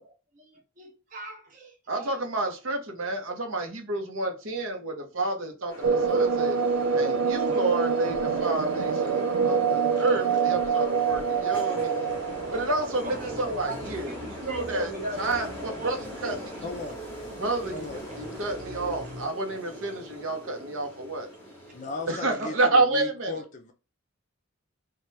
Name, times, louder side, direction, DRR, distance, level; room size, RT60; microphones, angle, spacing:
voice 1, 0.0-2.2 7.4-7.6 13.0-16.0, right 1 dB, 40° right, 0.8 m, -39 dB
voice 2, 1.9-6.6 6.9-12.1 12.5-14.9 15.2-16.7 17.4-17.7 18.2-21.3 22.1-23.3, right 2 dB, 70° right, 0.7 m, -29 dB
sound 1, 5.7-22.3, right 1 dB, 10° left, 0.9 m, -40 dB
sound 2, 5.8-13.4, right 6 dB, 85° right, 0.4 m, -26 dB
sound 3, 12.1-19.3, equal, 55° right, 1.3 m, -46 dB
voice 3, 16.6-17.0 17.7-18.1 21.7-23.7, left 3 dB, 35° left, 0.5 m, -37 dB
2.8 x 2.2 x 3.2 m
head